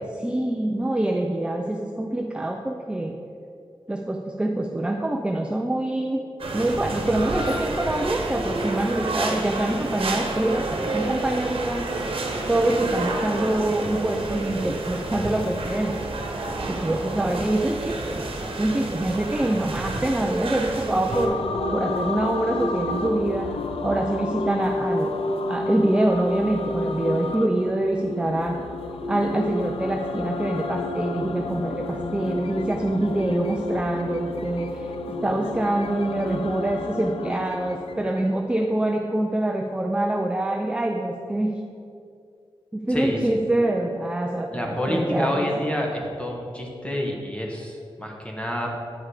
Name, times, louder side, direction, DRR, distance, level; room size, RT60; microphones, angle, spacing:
voice 1, 0.1-3.2 3.9-6.2 6.5-11.9 12.5-16.1 16.7-18.2 18.5-21.4 21.7-23.6 23.8-25.1 25.5-28.6 29.1-34.9 35.2-41.6 42.7-45.6, right 1 dB, 10° right, 2 dB, 0.4 m, -25 dB
sound 1, 6.4-21.3, right 2 dB, 70° right, 1.1 m, -30 dB
sound 2, 21.1-38.4, left 2 dB, 90° left, 0.5 m, -30 dB
voice 2, 44.5-48.7, left 1 dB, 10° left, 0 dB, 1.3 m, -28 dB
9.5 x 5.5 x 4.9 m, 2.4 s
wide cardioid pair, 120°, 10 cm